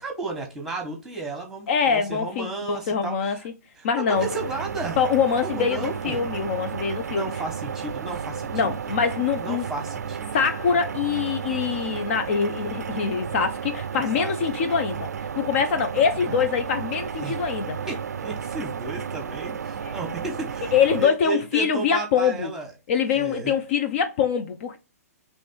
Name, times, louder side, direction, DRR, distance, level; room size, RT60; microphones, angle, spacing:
voice 1, 0.0-3.5 3.8-5.0 5.4-6.2 7.0-8.5 9.4-10.3 14.2-14.3 16.3-16.4 17.2-17.4 17.9-20.7 21.0-22.7 23.1-23.5, right 3 dB, 5° right, 1.2 m, -33 dB
voice 2, 1.7-3.4 3.8-4.3 5.0-7.3 8.5-9.7 10.3-17.8 19.8-19.9 20.7-22.5 22.9-24.8, left 6 dB, 50° left, 0.5 m, -24 dB
sound 1, 4.2-21.1, right 7 dB, 85° right, 0.4 m, -33 dB
3.1 x 3.1 x 4.4 m
hypercardioid pair, 135°, 9 cm